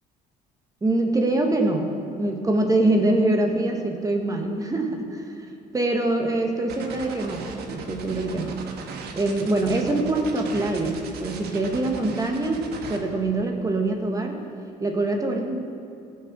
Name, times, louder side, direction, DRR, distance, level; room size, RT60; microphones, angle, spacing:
voice 1, 0.8-1.9 2.2-8.6 9.1-12.6 12.9-14.4 14.8-15.6, right 2 dB, 20° right, 3 dB, 1.3 m, -24 dB
sound 1, 6.7-13.0, right 5 dB, 70° right, 1.3 m, -37 dB
14.0 x 6.6 x 6.0 m, 2.6 s
cardioid pair, 110°, 17 cm